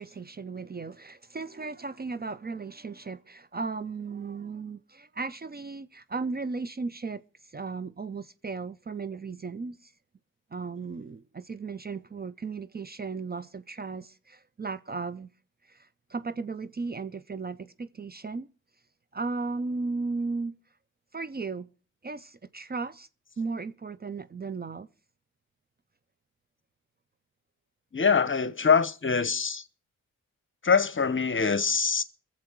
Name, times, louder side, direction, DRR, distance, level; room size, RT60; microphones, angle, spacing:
voice 1, 0.0-7.2 7.5-9.9 10.5-15.3 15.7-18.5 19.1-20.6 21.1-21.7 22.0-23.1 23.4-24.9, right 4 dB, 30° right, 0.6 m, -35 dB
voice 2, 27.9-29.6 30.6-32.0, left 5 dB, 35° left, 1.0 m, -24 dB
22.0 x 7.4 x 4.6 m
supercardioid pair, 45°, 34 cm